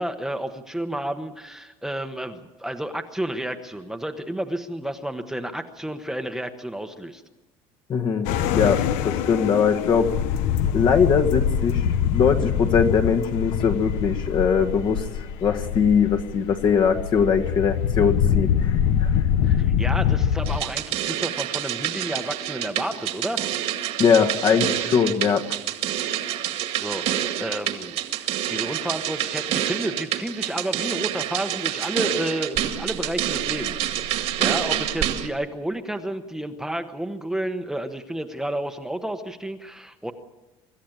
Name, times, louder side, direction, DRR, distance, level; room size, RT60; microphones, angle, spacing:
voice 1, 0.0-7.2 19.4-23.4 26.8-40.1, right 1 dB, 5° right, 6 dB, 1.0 m, -31 dB
voice 2, 7.9-10.1 10.7-11.9 12.1-15.1 15.4-19.1 24.0-25.4, left 6 dB, 45° left, 5 dB, 1.6 m, -21 dB
sound 1, 8.2-20.6, left 9 dB, 85° left, 1.1 m, -24 dB
sound 2, 20.5-35.3, right 12 dB, 65° right, 2.0 m, -27 dB
25.0 x 13.5 x 9.0 m, 1.1 s
cardioid pair, 145°, 11 cm